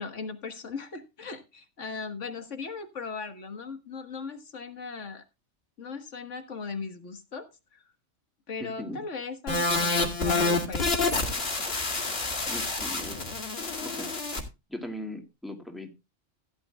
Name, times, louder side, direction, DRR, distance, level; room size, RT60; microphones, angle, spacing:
voice 1, 0.0-5.2 5.8-7.8 8.5-11.0, left 4 dB, 75° left, 8 dB, 1.9 m, -38 dB
voice 2, 8.6-9.0 12.4-13.3 13.8-14.1 14.7-15.9, left 1 dB, ahead, 3 dB, 2.1 m, -39 dB
sound 1, 9.5-14.4, left 3 dB, 55° left, 2.4 m, -28 dB
15.5 x 10.5 x 2.3 m, 0.26 s
omnidirectional pair, 1.2 m